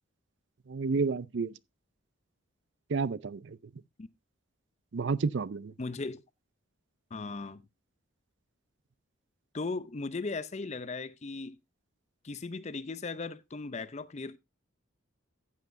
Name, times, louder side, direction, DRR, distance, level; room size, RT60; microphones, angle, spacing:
voice 1, 0.7-1.5 2.9-3.6 4.9-5.7, right 4 dB, 60° right, 0.5 m, -30 dB
voice 2, 5.8-6.2 7.1-7.6 9.5-11.6 12.2-14.4, left 3 dB, 30° left, 0.5 m, -37 dB
14.5 x 8.2 x 2.6 m
head